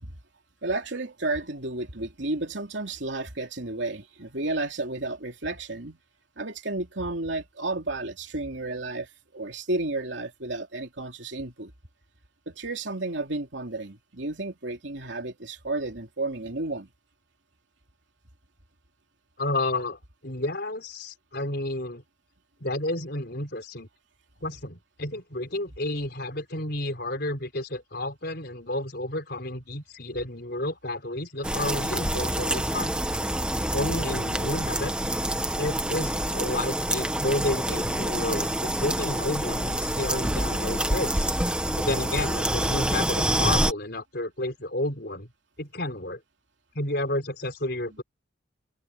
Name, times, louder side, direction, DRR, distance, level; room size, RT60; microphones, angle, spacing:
voice 1, 0.6-6.0 6.4-11.7 12.5-16.9, right 2 dB, 70° right, 3.1 m, -32 dB
voice 2, 19.4-22.0 22.6-23.9 24.4-33.0 33.7-34.9 35.6-41.3 41.7-45.3 45.6-46.2 46.7-48.0, left 1 dB, 55° left, 5.2 m, -31 dB
sound 1, 31.4-43.7, right 1 dB, 5° right, 1.4 m, -27 dB
open air
head